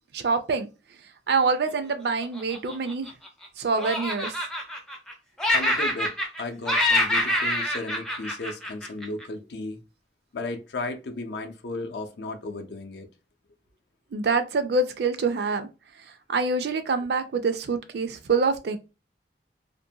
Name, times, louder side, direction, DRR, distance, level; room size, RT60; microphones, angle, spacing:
voice 1, 0.1-0.7 1.3-3.1 3.6-4.3 14.1-15.7 16.3-18.8, right 4 dB, 65° right, 0.4 m, -25 dB
Laughter, 2.2-3.5 3.8-5.1 5.4-6.4 6.7-9.2, left 1 dB, 5° left, 0.4 m, -26 dB
voice 2, 5.5-9.8 10.3-13.1, left 2 dB, 70° left, 0.5 m, -35 dB
2.5 x 2.1 x 2.7 m
head